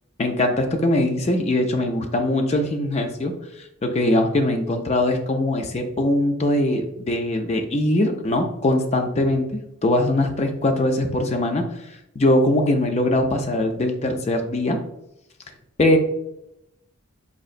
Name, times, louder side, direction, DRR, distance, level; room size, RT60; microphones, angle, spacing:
voice 1, 0.2-3.3 3.8-11.6 12.2-14.8 15.8-16.0, left 1 dB, 30° left, 4 dB, 0.4 m, -21 dB
4.2 x 2.8 x 2.4 m, 0.83 s
head